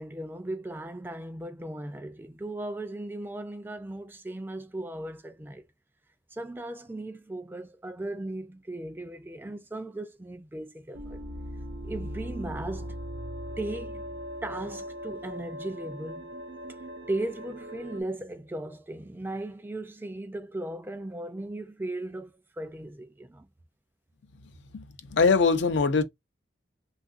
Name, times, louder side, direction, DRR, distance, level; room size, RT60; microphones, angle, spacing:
voice 1, 0.0-5.6 6.3-11.2 11.8-13.0 13.6-14.0 14.4-16.3 16.7-16.8 17.1-23.5, right 1 dB, 10° right, 0.3 m, -37 dB
sound 1, 10.9-18.0, equal, 65° right, 0.5 m, -39 dB
voice 2, 25.1-26.0, left 4 dB, 90° left, 0.5 m, -22 dB
3.4 x 2.4 x 2.4 m
head